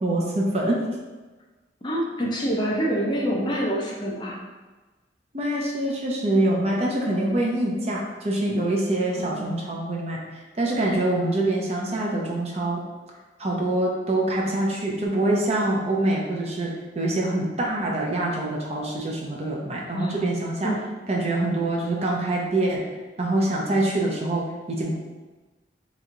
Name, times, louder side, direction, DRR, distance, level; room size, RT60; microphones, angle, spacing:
voice 1, 0.0-0.8 5.3-12.8 13.4-20.7 21.1-22.8 23.2-24.9, right 1 dB, 35° right, -2 dB, 0.6 m, -25 dB
voice 2, 1.8-4.4 9.1-9.6 19.9-20.3 20.6-20.8, equal, 25° left, -3 dB, 0.5 m, -26 dB
3.2 x 3.0 x 3.7 m, 1.2 s
head